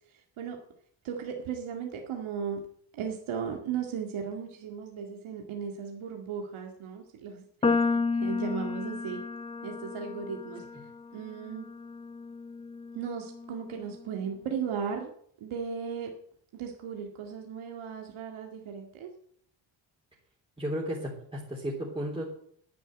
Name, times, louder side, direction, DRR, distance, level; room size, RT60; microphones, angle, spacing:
voice 1, 0.1-0.6 1.0-2.6 2.9-9.2 9.6-10.6 11.1-11.6 12.9-15.1 15.4-16.1 16.5-19.1, right 7 dB, 80° right, 2 dB, 2.1 m, -36 dB
sound 1, 7.6-14.0, left 4 dB, 15° left, 0.4 m, -32 dB
voice 2, 20.6-22.2, equal, 10° right, -5 dB, 3.6 m, -33 dB
10.5 x 10.0 x 8.9 m, 0.65 s
cardioid pair, 125°, 48 cm